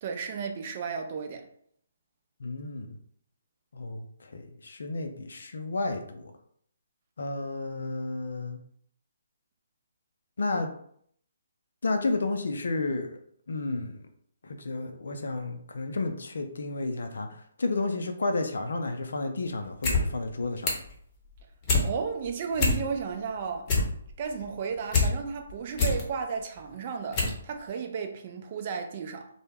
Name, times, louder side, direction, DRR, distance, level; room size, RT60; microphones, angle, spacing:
voice 1, 0.0-1.4 21.8-23.7 24.2-29.3, right 5 dB, 40° right, 0.4 m, -33 dB
voice 2, 2.4-2.9 3.7-6.3 7.2-8.6 10.4-10.7 11.8-13.2 13.5-14.0 14.4-20.8, left 3 dB, 65° left, 0.4 m, -32 dB
sound 1, 19.6-20.0 20.3-20.9 21.3-21.9 22.2-22.3 22.5-23.1 23.4-25.1 25.5-26.0 26.6-26.7 27.1-27.4 27.7-27.8, left 3 dB, 30° left, 0.7 m, -25 dB
2.1 x 2.1 x 3.3 m
figure-of-eight pair, 140°, 0 cm